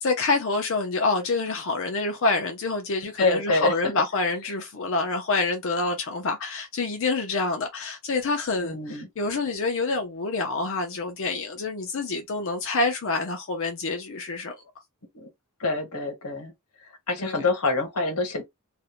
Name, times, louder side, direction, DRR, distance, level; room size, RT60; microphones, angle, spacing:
voice 1, 0.0-14.6 17.2-17.5, left 3 dB, 60° left, 0.5 m, -27 dB
voice 2, 3.2-3.9 8.6-9.1 15.1-15.3 15.6-16.5 17.1-18.4, left 3 dB, 85° left, 1.0 m, -26 dB
2.5 x 2.1 x 2.8 m
head